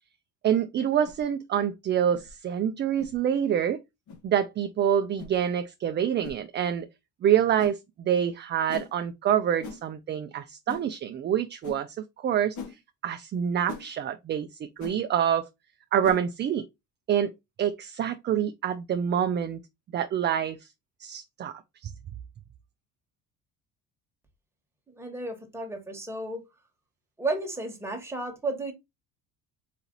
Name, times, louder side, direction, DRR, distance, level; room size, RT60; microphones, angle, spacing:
voice 1, 0.4-3.8 4.2-6.9 7.2-12.6 13.0-14.5 14.8-15.5 15.9-16.6 17.1-17.3 17.6-19.6 19.9-20.7 21.0-21.5 21.8-21.9, right 9 dB, 30° right, 0.4 m, -26 dB
sound 1, 1.0-1.2 2.1-2.3 3.0-3.2 4.1-4.2 5.2-5.4 6.2-6.4 7.6-7.8 8.7-8.9 9.6-9.8 10.7-10.9 11.6-11.8 12.5-12.8 13.7-13.9 14.8-15.0 16.0-16.2, left 5 dB, 55° left, 1.2 m, -40 dB
voice 2, 24.9-26.4 27.2-28.7, right 2 dB, 5° right, 1.4 m, -33 dB
4.1 x 2.8 x 3.8 m
cardioid pair, 110°, 35 cm